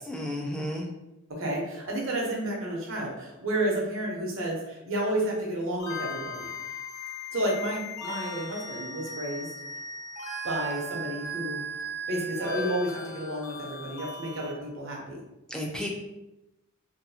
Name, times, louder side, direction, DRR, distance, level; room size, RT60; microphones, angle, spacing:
voice 1, 0.1-0.9 15.5-15.9, left 1 dB, 5° left, 0 dB, 0.3 m, -32 dB
voice 2, 1.3-6.5 7.3-9.5 10.4-11.6 12.1-15.2, right 1 dB, 65° right, -2 dB, 0.7 m, -31 dB
sound 1, 5.8-14.5, equal, 85° left, 0.7 m, -37 dB
2.7 x 2.3 x 2.6 m, 0.94 s
head